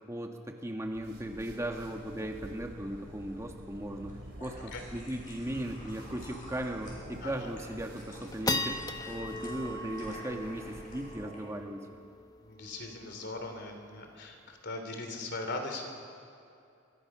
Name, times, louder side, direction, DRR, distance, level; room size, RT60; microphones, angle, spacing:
voice 1, 0.1-8.8 9.1-11.9, right 1 dB, 15° right, 2 dB, 1.5 m, -37 dB
sound 1, 0.8-11.3, right 1 dB, 55° right, 3.5 m, -49 dB
sound 2, 3.9-11.4, left 1 dB, 40° left, 7.7 m, -52 dB
sound 3, 4.9-5.0 5.3-5.4 5.8-6.1 6.5-6.6 7.2-7.5 8.0-14.6, left 2 dB, 20° left, 1.1 m, -39 dB
voice 2, 12.4-15.9, left 2 dB, 55° left, 5 dB, 3.2 m, -39 dB
25.0 x 23.0 x 6.1 m, 2.6 s
head